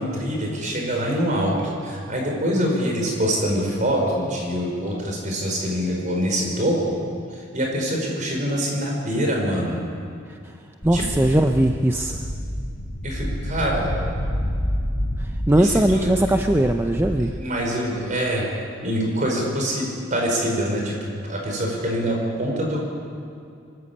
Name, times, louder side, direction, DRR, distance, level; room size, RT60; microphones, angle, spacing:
voice 1, 0.0-6.9 7.3-9.8 10.9-11.1 13.0-13.9 15.6-16.4 17.3-18.4 18.8-21.0 21.3-23.0, equal, 40° right, 0 dB, 5.2 m, -24 dB
sound 1, 10.8-17.2, equal, 80° left, 4.0 m, -28 dB
voice 2, 10.8-12.2 15.2-17.3, right 1 dB, 10° right, 5 dB, 0.6 m, -20 dB
23.5 x 14.0 x 8.5 m, 2.5 s
head